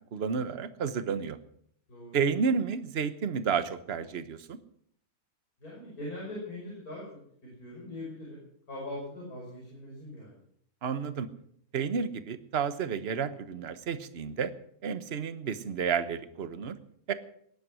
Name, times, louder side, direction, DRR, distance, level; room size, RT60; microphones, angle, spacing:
voice 1, 0.1-1.4 2.1-4.6 10.8-11.3 11.7-14.5 14.8-16.8 17.1-17.2, right 6 dB, 45° right, 12 dB, 1.2 m, -31 dB
voice 2, 1.9-2.2 5.6-7.1 7.4-8.4 8.7-10.4, left 1 dB, 75° left, -4 dB, 6.3 m, -41 dB
20.0 x 11.0 x 6.2 m, 0.66 s
omnidirectional pair, 1.6 m